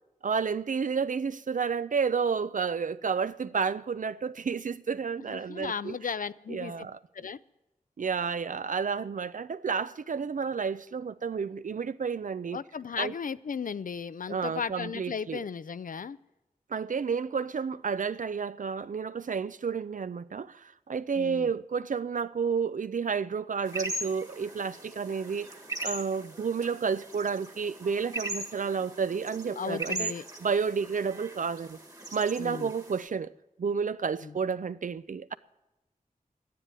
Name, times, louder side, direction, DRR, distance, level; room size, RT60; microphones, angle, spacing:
voice 1, 0.2-6.0 6.5-7.0 8.0-12.6 13.0-13.1 14.3-15.5 16.7-25.5 25.8-30.1 30.4-31.8 32.1-33.3 33.6-35.3, right 6 dB, 65° right, 0.4 m, -31 dB
voice 2, 5.3-6.7 7.1-7.4 12.5-16.2 21.2-21.5 29.6-30.2 32.4-32.7 34.2-34.3, left 6 dB, 70° left, 0.5 m, -35 dB
sound 1, 23.6-33.1, right 2 dB, 25° right, 1.5 m, -39 dB
12.5 x 10.5 x 9.7 m
wide cardioid pair, 70°, 15 cm